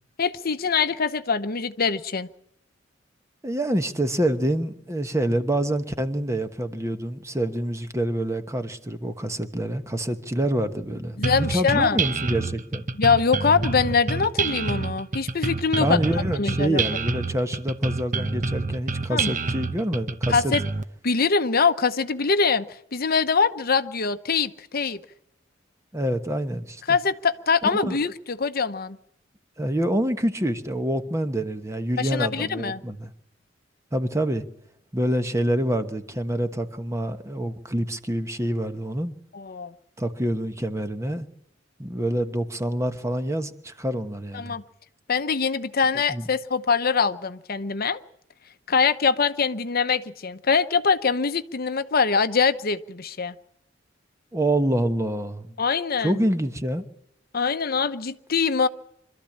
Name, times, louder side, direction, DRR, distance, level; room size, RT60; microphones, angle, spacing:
voice 1, 0.2-2.3 11.2-12.0 13.0-16.0 16.4-16.8 19.1-19.3 20.3-20.6 21.0-25.0 26.9-29.0 32.0-32.8 39.3-39.7 44.3-44.6 45.1-48.0 48.7-53.3 55.6-56.2 57.3-58.7, left 5 dB, 50° left, 0.9 m, -23 dB
voice 2, 3.4-12.9 15.8-20.5 25.9-27.0 27.7-28.0 29.6-33.1 33.9-34.4 34.9-39.1 40.0-41.3 41.8-44.6 46.1-46.2 54.3-55.6 56.0-56.8, right 1 dB, 15° right, 1.2 m, -26 dB
sound 1, 11.2-20.8, right 3 dB, 40° right, 1.0 m, -27 dB
25.5 x 13.5 x 8.7 m
head